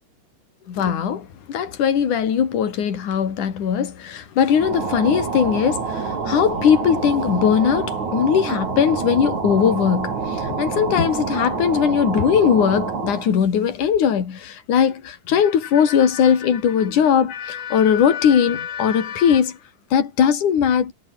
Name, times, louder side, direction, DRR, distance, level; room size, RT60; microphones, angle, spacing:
voice 1, 0.7-19.6 19.9-20.9, left 8 dB, 60° left, 4.3 m, -19 dB
sound 1, 4.5-13.3, right 5 dB, 55° right, 5.9 m, -27 dB
omnidirectional pair, 4.1 m